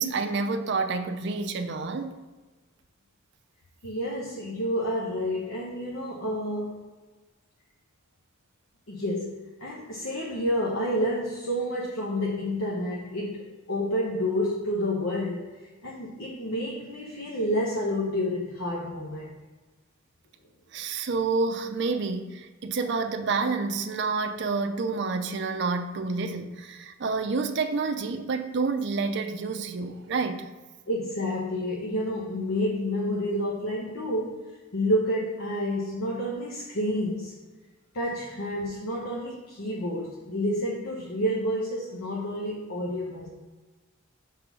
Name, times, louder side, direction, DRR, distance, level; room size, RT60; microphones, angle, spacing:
voice 1, 0.0-2.2 20.7-30.5, right 4 dB, 55° right, 6 dB, 0.5 m, -29 dB
voice 2, 3.8-6.9 8.9-15.5 15.8-19.3 30.9-37.3 37.9-43.3, equal, 75° left, -4 dB, 1.0 m, -29 dB
5.8 x 3.7 x 6.0 m, 1.3 s
head